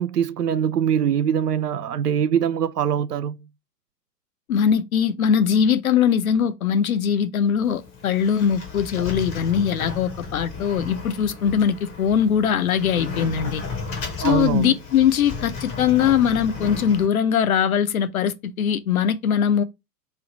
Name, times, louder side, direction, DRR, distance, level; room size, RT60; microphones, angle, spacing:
voice 1, 0.0-3.5 14.2-14.8, right 9 dB, 70° right, 0.5 m, -23 dB
voice 2, 4.5-13.6 14.2-19.6, left 8 dB, 60° left, 0.6 m, -21 dB
Sliding door, 7.6-17.1, left 4 dB, 15° left, 0.7 m, -34 dB
3.2 x 2.4 x 3.9 m
figure-of-eight pair, 110°, 49 cm